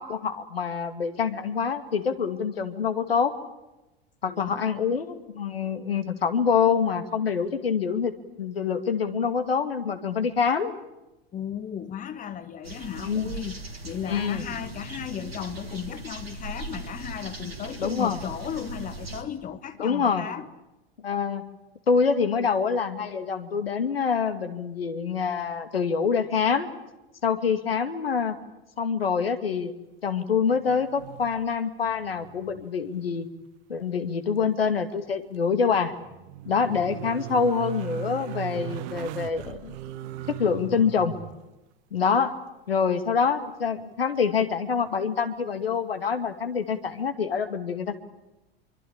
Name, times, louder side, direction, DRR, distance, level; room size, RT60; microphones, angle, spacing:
voice 1, 0.0-3.3 4.2-8.1 8.4-10.7 13.0-13.3 14.1-14.5 17.8-18.2 19.8-20.3 21.0-21.4 21.9-26.7 27.2-28.3 28.8-29.7 30.0-33.3 33.7-35.9 36.5-39.8 40.3-41.2 41.9-42.3 42.7-48.0, left 6 dB, 75° left, 2.4 m, -26 dB
voice 2, 4.3-4.6 11.3-20.5, left 9 dB, 25° left, 1.8 m, -35 dB
sound 1, 12.6-19.2, right 2 dB, 80° right, 3.1 m, -39 dB
sound 2, 30.6-31.6 31.9-32.7 32.9-33.0 35.5-41.4 44.3-44.4, right 14 dB, 50° right, 1.2 m, -38 dB
27.5 x 24.0 x 8.7 m
figure-of-eight pair, 80°, 30 cm